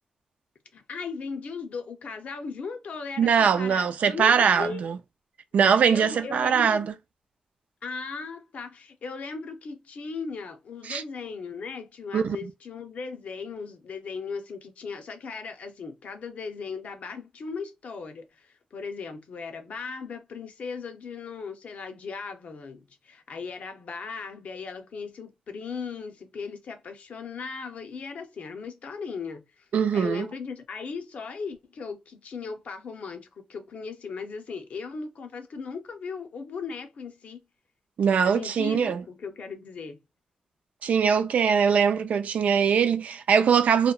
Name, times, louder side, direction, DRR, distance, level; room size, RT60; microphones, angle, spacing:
voice 1, 0.7-4.9 5.8-6.9 7.8-29.7 29.9-37.4 38.2-40.0, left 5 dB, 75° left, 0.6 m, -37 dB
voice 2, 3.2-5.0 5.5-6.9 10.9-11.0 12.1-12.4 29.7-30.3 38.0-39.0 40.8-43.9, right 7 dB, 85° right, 0.3 m, -22 dB
2.8 x 2.2 x 2.3 m
wide cardioid pair, 125°, 2 cm